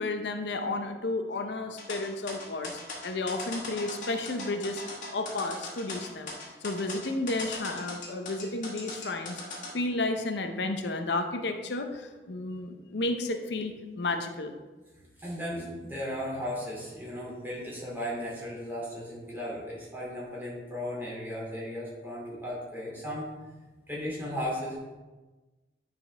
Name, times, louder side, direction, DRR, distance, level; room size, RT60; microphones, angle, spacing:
voice 1, 0.0-4.8 5.1-6.4 6.6-9.4 9.7-14.5, left 2 dB, 85° left, 6 dB, 0.6 m, -32 dB
sound 1, 1.8-9.7, left 2 dB, 45° left, 1.8 m, -39 dB
voice 2, 15.0-23.3 23.9-24.8, equal, 10° right, -6 dB, 2.5 m, -36 dB
9.5 x 5.3 x 3.3 m, 1.2 s
head